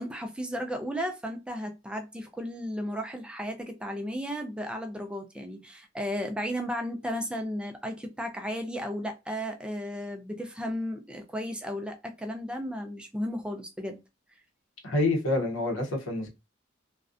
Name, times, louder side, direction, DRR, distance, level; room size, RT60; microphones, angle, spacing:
voice 1, 0.0-14.0, equal, 5° right, 0.3 m, -34 dB
voice 2, 14.8-16.3, left 2 dB, 80° left, 0.7 m, -27 dB
2.5 x 2.1 x 2.4 m
head